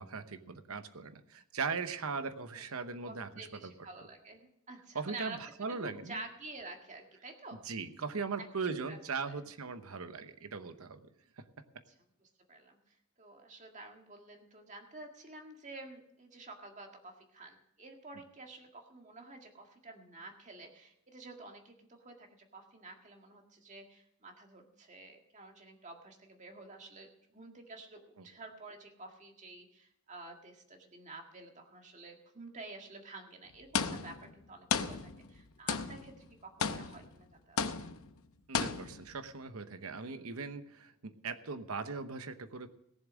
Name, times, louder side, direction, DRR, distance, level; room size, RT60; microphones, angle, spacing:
voice 1, 0.0-3.7 4.9-6.2 7.6-11.1 11.4-11.5 28.2-28.3 38.5-42.7, right 4 dB, 75° right, 10 dB, 0.9 m, -39 dB
voice 2, 3.1-5.4 5.7-7.6 8.4-9.0 9.3-9.4 11.9-12.0 12.2-38.0 40.1-40.2, right 2 dB, 35° right, 3 dB, 1.8 m, -50 dB
sound 1, 33.7-34.3 34.7-35.4 35.7-36.2 36.6-37.2 37.6-38.1 38.5-39.1, left 6 dB, 75° left, 0.8 m, -34 dB
18.5 x 7.2 x 6.2 m, 0.77 s
head